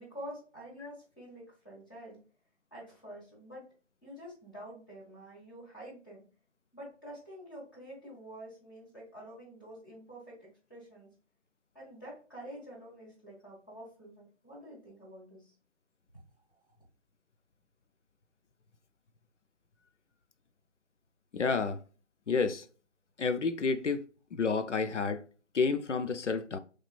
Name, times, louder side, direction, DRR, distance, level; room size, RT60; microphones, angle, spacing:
voice 1, 0.0-2.2 2.7-3.6 4.0-6.2 6.7-11.1 11.7-15.5, equal, 15° left, 1.4 m, -48 dB
voice 2, 21.3-21.8 22.3-22.6 23.2-24.0 24.3-25.2 25.5-26.6, left 4 dB, 70° left, 0.6 m, -30 dB
3.4 x 3.1 x 2.3 m
figure-of-eight pair, 165°, 37 cm